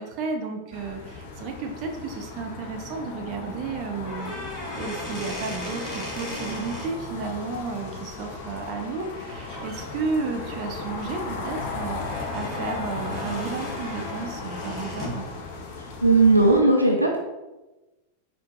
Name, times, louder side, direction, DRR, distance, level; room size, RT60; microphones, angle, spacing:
voice 1, 0.0-15.3, right 4 dB, 40° right, 2 dB, 0.6 m, -33 dB
sound 1, 0.7-16.6, left 3 dB, 50° left, 0.5 m, -36 dB
sound 2, 4.0-6.9 9.0-9.2 9.5-9.8 10.3-15.2, left 1 dB, 25° left, 1.3 m, -37 dB
voice 2, 16.0-17.2, right 2 dB, 85° right, 0 dB, 0.4 m, -17 dB
4.4 x 2.6 x 2.3 m, 1.1 s
figure-of-eight pair, 90°, 0 cm